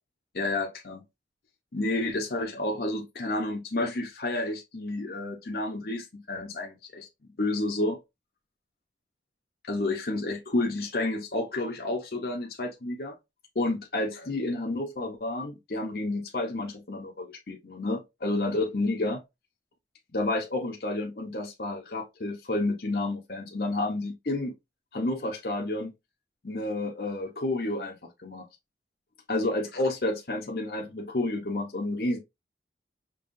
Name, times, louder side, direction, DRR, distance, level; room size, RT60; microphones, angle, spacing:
voice 1, 0.3-1.0 1.7-8.0 9.7-13.1 13.5-19.2 20.1-24.5 24.9-25.9 26.4-28.5 29.3-32.2, left 2 dB, 55° left, 0.8 m, -30 dB
5.4 x 3.0 x 2.6 m
head